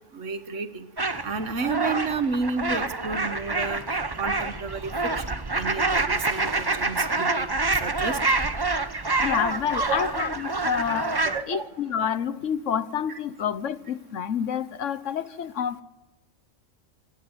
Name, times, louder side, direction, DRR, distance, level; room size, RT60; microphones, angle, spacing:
voice 1, 0.1-0.9 1.2-7.5 7.8-8.2 9.9-10.0 11.2-11.7, right 4 dB, 65° right, 11 dB, 1.6 m, -31 dB
sound 1, 1.0-11.4, right 3 dB, 20° right, 0.9 m, -27 dB
voice 2, 9.2-11.1 11.5-15.8, left 8 dB, 70° left, 15 dB, 1.2 m, -28 dB
28.0 x 11.0 x 9.7 m, 1.1 s
omnidirectional pair, 1.4 m